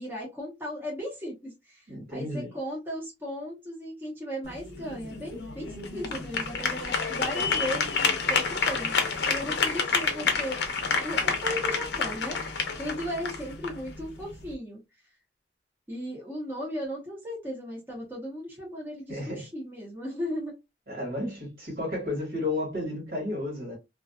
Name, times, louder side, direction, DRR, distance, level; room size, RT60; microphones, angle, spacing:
voice 1, 0.0-1.8 2.1-8.9 9.3-10.6 10.9-14.8 15.9-20.5, equal, 10° right, 0.9 m, -36 dB
voice 2, 1.9-2.5 10.2-10.3 19.1-19.4 20.9-23.8, left 1 dB, 55° right, 1.5 m, -32 dB
sound 1, 4.4-14.5, left 5 dB, 70° left, 0.6 m, -29 dB
2.4 x 2.3 x 2.3 m
head